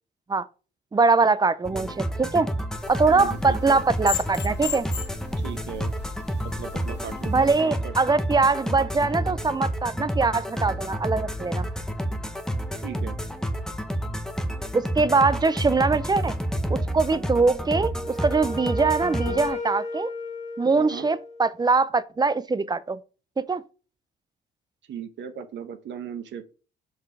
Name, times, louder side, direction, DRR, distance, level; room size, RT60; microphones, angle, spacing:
voice 1, 0.9-2.5 2.9-4.9 7.3-11.7 14.7-16.3 16.7-20.1 20.6-23.0 23.4-23.6, right 4 dB, 20° right, 0.5 m, -22 dB
sound 1, 1.6-19.5, equal, 5° left, 0.8 m, -30 dB
sound 2, 2.7-7.6, left 8 dB, 60° left, 1.4 m, -37 dB
voice 2, 3.1-3.8 5.4-5.9 6.4-7.9 12.8-13.2 20.6-21.1 24.9-26.4, right 8 dB, 65° right, 1.0 m, -37 dB
Wind instrument woodwind instrument, 17.7-21.6, left 1 dB, 35° left, 1.5 m, -34 dB
5.3 x 4.0 x 4.7 m
cardioid pair, 90°, 20 cm